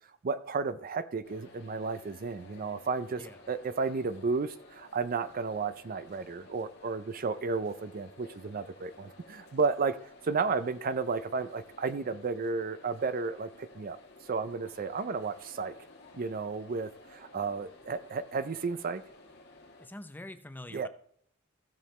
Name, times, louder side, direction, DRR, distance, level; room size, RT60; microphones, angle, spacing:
voice 1, 0.2-10.0 10.2-14.0 14.3-15.7 16.1-19.0 20.7-20.9, right 4 dB, 45° right, 13 dB, 0.5 m, -33 dB
sound 1, 1.2-19.9, left 2 dB, 55° left, 2.1 m, -54 dB
voice 2, 19.8-20.9, left 1 dB, 10° left, 10 dB, 0.6 m, -45 dB
15.5 x 6.9 x 3.2 m, 0.65 s
head